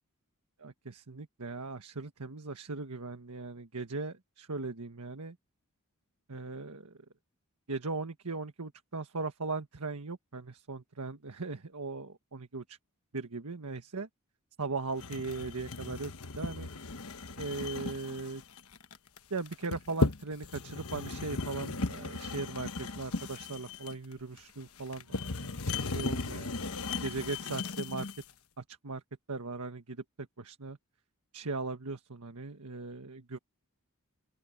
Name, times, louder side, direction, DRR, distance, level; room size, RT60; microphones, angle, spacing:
voice 1, 0.6-5.4 6.3-6.9 7.7-12.8 13.1-14.1 14.6-16.7 17.4-18.4 19.3-25.3 25.8-26.5 27.0-28.1 28.6-29.0 29.3-30.8 31.3-33.4, right 3 dB, 90° right, 1.4 m, -38 dB
sound 1, 15.0-28.3, left 3 dB, 70° left, 1.2 m, -36 dB
open air
head